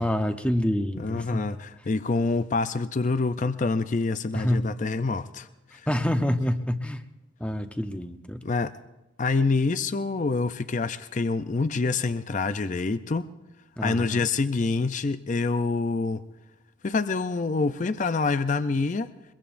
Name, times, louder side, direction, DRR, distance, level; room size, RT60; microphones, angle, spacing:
voice 1, 0.0-1.5 4.3-4.7 5.9-7.0 7.4-8.4 13.8-14.3, equal, 5° left, 7 dB, 0.7 m, -27 dB
voice 2, 1.0-5.5 5.7-5.8 8.4-8.7 9.2-13.3 13.8-16.2 16.8-19.1, left 3 dB, 35° left, 12 dB, 0.4 m, -26 dB
23.0 x 22.5 x 2.6 m, 1.0 s
head